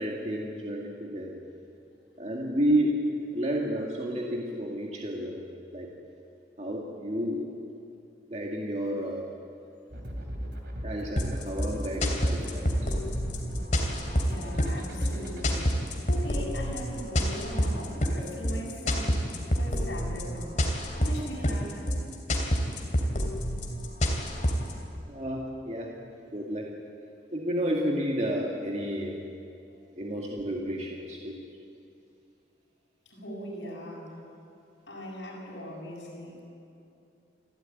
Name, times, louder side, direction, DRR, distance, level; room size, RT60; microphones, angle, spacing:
voice 1, 0.0-1.4 2.2-3.0 3.3-5.4 5.7-5.9 6.6-7.5 8.3-9.3 10.8-12.9 25.1-25.9 26.3-26.7 27.3-29.2 30.0-31.4, equal, 35° right, -2 dB, 2.1 m, -31 dB
sound 1, 9.9-15.6, equal, 65° right, 3.2 m, -37 dB
sound 2, 11.2-24.7, equal, 40° left, 3.0 m, -28 dB
voice 2, 14.3-19.3 19.6-20.6 21.0-21.9 33.1-34.2 34.9-36.4, equal, 75° left, -3 dB, 7.4 m, -39 dB
29.0 x 13.5 x 9.3 m, 2.6 s
head